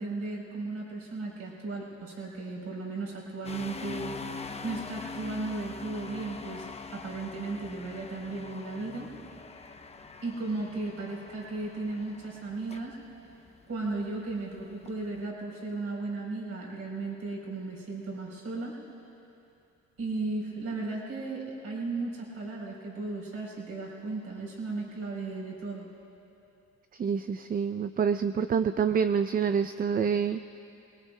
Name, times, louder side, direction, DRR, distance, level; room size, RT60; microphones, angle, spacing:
voice 1, 0.0-4.2 4.6-6.7 6.9-9.1 10.2-13.0 13.7-18.7 20.0-25.9, right 3 dB, 55° right, -3 dB, 3.9 m, -35 dB
sound 1, 3.4-15.2, left 4 dB, 20° left, 0.7 m, -44 dB
voice 2, 26.9-30.6, right 6 dB, 30° right, 10 dB, 0.4 m, -27 dB
25.5 x 19.5 x 2.2 m, 2.7 s
cardioid pair, 90°, 30 cm